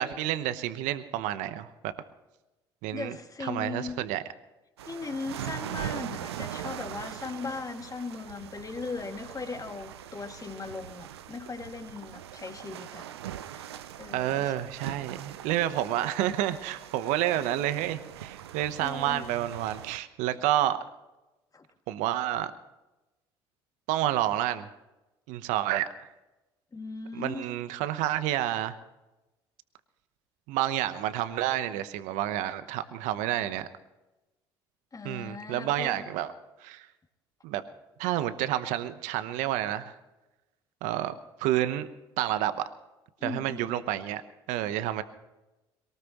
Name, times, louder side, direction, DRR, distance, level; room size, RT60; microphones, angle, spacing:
voice 1, 0.0-1.9 2.8-4.2 14.1-20.8 21.9-22.5 23.9-24.7 25.3-26.1 27.1-28.8 30.5-33.7 35.0-36.3 36.6-36.9 37.4-37.6 38.0-39.9 40.8-41.1 41.4-41.9 42.2-42.6 43.2-44.2 44.5-45.0, right 13 dB, 70° right, 12 dB, 1.0 m, -29 dB
voice 2, 2.9-4.0 4.8-13.1 13.5-13.7 14.0-14.5 18.8-19.4 21.5-21.6 26.7-27.5 34.9-36.1 43.2-43.7, left 4 dB, 25° left, 4 dB, 2.3 m, -38 dB
sound 1, 4.8-20.0, right 11 dB, 90° right, 0.6 m, -41 dB
22.5 x 19.0 x 3.1 m, 1.0 s
hypercardioid pair, 60°, 13 cm